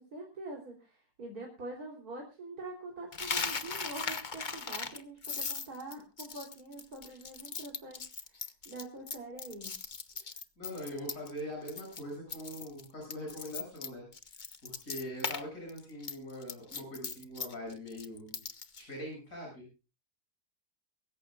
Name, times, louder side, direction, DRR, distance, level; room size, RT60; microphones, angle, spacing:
voice 1, 0.0-9.7, right 2 dB, 65° right, 0 dB, 4.1 m, -45 dB
Coin (dropping), 3.1-11.4 11.7-12.0 12.3-15.4 15.7-18.8, left 5 dB, 35° left, 1.1 m, -38 dB
voice 2, 10.1-14.0 14.6-18.4 18.7-19.7, equal, 55° left, -1 dB, 8.1 m, -42 dB
23.5 x 14.5 x 2.5 m, 0.32 s
omnidirectional pair, 1.7 m